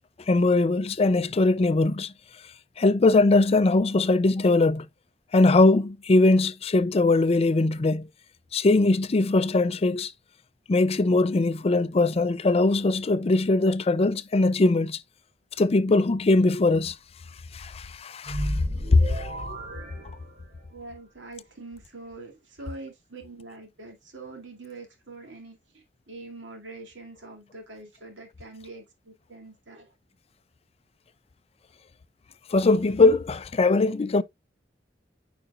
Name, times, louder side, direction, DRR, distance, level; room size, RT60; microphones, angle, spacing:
voice 1, 0.3-2.1 2.8-4.9 5.3-8.1 8.5-10.1 10.7-15.0 15.6-16.9 17.5-18.5 18.9-19.3 32.5-34.2, left 2 dB, 35° left, 0.4 m, -21 dB
sound 1, 18.2-20.8, equal, 50° right, 3.7 m, -33 dB
voice 2, 20.7-29.9, right 3 dB, 80° right, 2.5 m, -44 dB
9.0 x 5.0 x 2.4 m
head